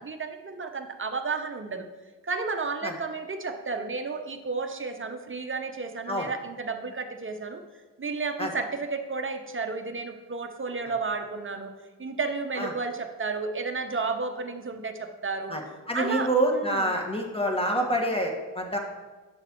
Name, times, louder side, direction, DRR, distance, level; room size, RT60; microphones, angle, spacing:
voice 1, 0.0-1.8 2.2-7.6 8.0-11.7 12.0-15.6 15.9-17.0, right 4 dB, 25° right, 6 dB, 1.0 m, -32 dB
voice 2, 15.9-18.8, right 1 dB, 10° left, 0 dB, 1.7 m, -26 dB
8.7 x 6.6 x 3.1 m, 1.3 s
supercardioid pair, 45°, 45 cm